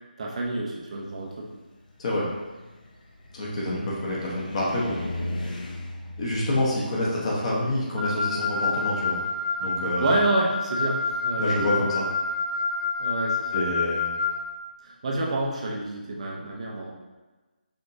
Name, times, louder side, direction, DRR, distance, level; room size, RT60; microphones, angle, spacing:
voice 1, 0.2-1.5 10.0-11.7 13.0-13.5 14.8-16.9, right 2 dB, 45° right, -1 dB, 0.7 m, -28 dB
Car, 1.1-9.3, left 1 dB, 55° left, 0.7 m, -39 dB
voice 2, 3.3-5.0 6.2-9.2 9.6-10.2 11.4-12.1 13.5-14.1, left 1 dB, 40° left, -5 dB, 1.1 m, -27 dB
Wind instrument woodwind instrument, 8.0-14.4, left 4 dB, 75° right, 0.8 m, -28 dB
5.1 x 2.9 x 2.7 m, 1.2 s
figure-of-eight pair, 150°, 5 cm